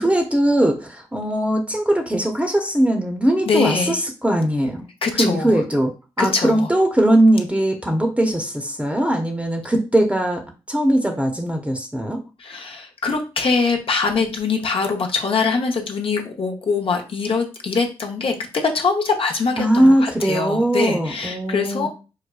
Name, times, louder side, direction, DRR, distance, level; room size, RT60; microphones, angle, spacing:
voice 1, 0.0-4.9 5.1-5.9 6.2-10.4 10.7-12.2 19.6-21.9, right 1 dB, 10° right, 3 dB, 0.8 m, -20 dB
voice 2, 3.4-4.0 5.0-5.6 6.2-6.7 12.4-21.9, left 4 dB, 60° left, 2 dB, 0.7 m, -23 dB
4.8 x 2.1 x 2.3 m, 0.32 s
supercardioid pair, 40°, 11 cm